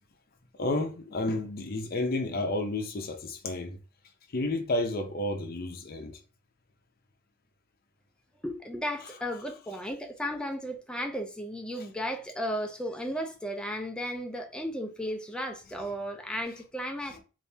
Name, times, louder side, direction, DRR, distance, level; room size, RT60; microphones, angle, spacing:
voice 1, 0.5-3.8 4.3-6.2 11.8-11.9 17.1-17.2, left 2 dB, 45° left, 0.6 m, -31 dB
voice 2, 8.4-17.2, equal, 5° left, 0.4 m, -34 dB
3.3 x 2.6 x 2.7 m
head